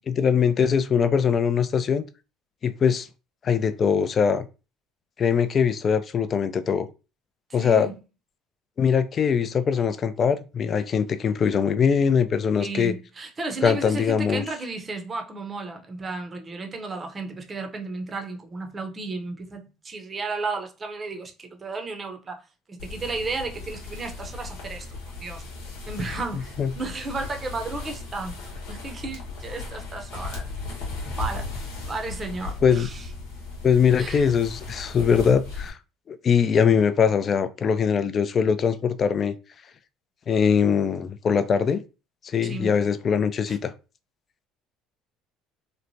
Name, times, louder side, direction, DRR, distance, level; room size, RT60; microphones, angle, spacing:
voice 1, 0.1-2.0 2.6-3.1 3.4-4.4 5.2-6.9 7.5-7.9 8.8-12.9 13.6-14.4 26.6-26.7 32.6-32.9 33.6-35.8 36.1-39.4 40.3-41.8 42.2-43.7, left 6 dB, 40° left, 0.3 m, -22 dB
voice 2, 7.5-8.0 12.6-22.4 22.7-25.4 25.9-28.4 28.7-30.4 31.2-31.6 31.9-33.1 34.0-34.3 42.4-42.7 43.5-43.6, right 3 dB, 30° right, 0.6 m, -33 dB
sound 1, 22.8-35.7, left 3 dB, 85° left, 0.9 m, -36 dB
3.0 x 2.1 x 2.7 m
supercardioid pair, 90°, 0 cm